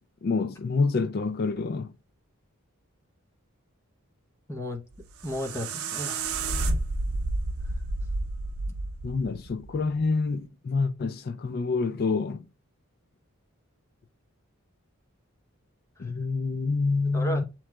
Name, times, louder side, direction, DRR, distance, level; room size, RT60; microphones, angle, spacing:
voice 1, 0.2-1.9 9.0-12.4 16.0-17.4, left 4 dB, 45° left, 0.4 m, -27 dB
voice 2, 4.5-4.8 5.2-6.3 16.0-16.1 17.1-17.4, equal, 15° left, 0.8 m, -34 dB
sound 1, 4.9-10.0, right 2 dB, 80° right, 0.6 m, -31 dB
7.4 x 3.0 x 2.2 m
head